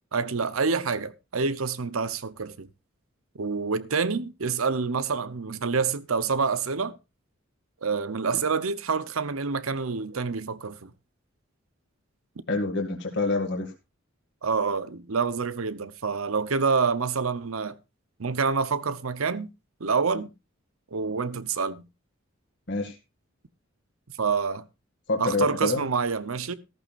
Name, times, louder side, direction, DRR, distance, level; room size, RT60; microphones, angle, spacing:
voice 1, 0.1-2.7 3.3-6.9 7.8-10.9 14.4-17.8 18.2-19.5 19.8-20.3 20.9-21.8 24.2-24.6 25.2-26.5, right 5 dB, 90° right, 0.8 m, -27 dB
voice 2, 12.5-13.7 22.7-23.0 25.1-25.8, left 3 dB, 55° left, 2.1 m, -26 dB
14.5 x 13.5 x 2.5 m
head